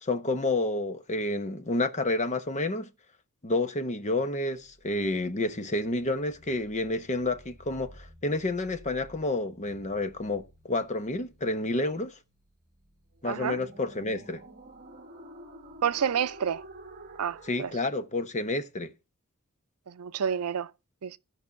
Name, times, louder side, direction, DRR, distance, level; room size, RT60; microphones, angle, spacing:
voice 1, 0.0-2.9 3.4-12.1 13.2-14.4 17.5-18.9, left 2 dB, 35° left, 1.0 m, -29 dB
sound 1, 4.6-17.8, right 1 dB, 40° right, 1.9 m, -51 dB
voice 2, 13.2-13.6 15.8-16.6 17.2-17.7 19.9-20.7 21.0-21.2, right 7 dB, 80° right, 0.5 m, -29 dB
14.5 x 5.3 x 7.1 m
head